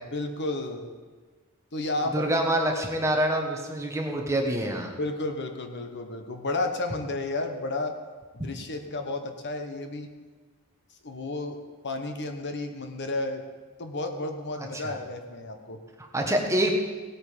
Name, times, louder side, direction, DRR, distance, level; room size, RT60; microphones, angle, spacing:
voice 1, 0.1-0.9 1.7-2.3 5.0-7.9 8.3-10.1 11.0-11.6 11.8-13.4 13.8-15.8, left 2 dB, 50° left, 6 dB, 1.1 m, -32 dB
voice 2, 2.1-4.9 8.4-8.5 14.6-14.9 16.0-16.7, right 1 dB, 15° right, 2 dB, 1.4 m, -26 dB
17.5 x 8.6 x 5.1 m, 1.4 s
head